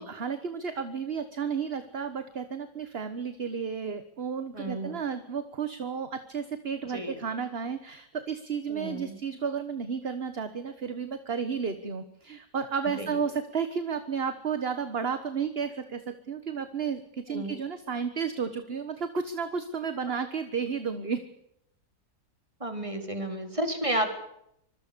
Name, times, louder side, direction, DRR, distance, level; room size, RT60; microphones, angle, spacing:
voice 1, 0.0-21.2, right 6 dB, 40° right, 10 dB, 1.5 m, -32 dB
voice 2, 4.5-5.0 6.9-7.1 8.7-9.2 13.0-13.1 17.3-17.6 22.6-24.1, right 1 dB, 20° right, 6 dB, 4.1 m, -32 dB
25.5 x 21.5 x 6.9 m, 0.75 s
omnidirectional pair, 1.7 m